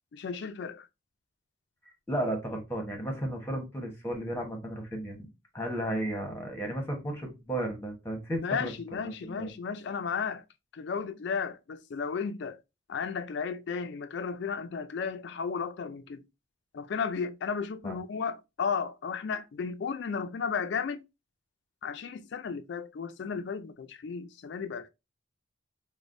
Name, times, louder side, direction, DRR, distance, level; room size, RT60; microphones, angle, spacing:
voice 1, 0.1-0.9 8.4-10.4 10.7-12.6 12.9-16.2 16.7-21.0 21.8-24.9, left 6 dB, 60° left, 0.4 m, -34 dB
voice 2, 2.1-5.2 5.5-8.7 9.2-9.5 17.8-17.9, right 1 dB, 10° left, 1.0 m, -33 dB
5.0 x 2.1 x 2.5 m
head